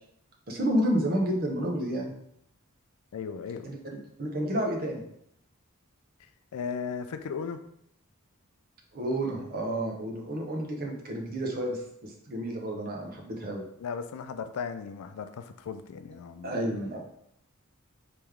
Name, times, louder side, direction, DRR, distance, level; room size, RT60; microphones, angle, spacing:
voice 1, 0.5-2.1 3.6-3.8 4.2-5.0 8.9-13.6 16.4-17.0, right 1 dB, 45° right, 0 dB, 0.8 m, -30 dB
voice 2, 3.1-3.8 6.5-7.6 13.8-16.6, left 6 dB, 85° left, 10 dB, 0.4 m, -36 dB
3.3 x 3.0 x 3.5 m, 0.73 s
head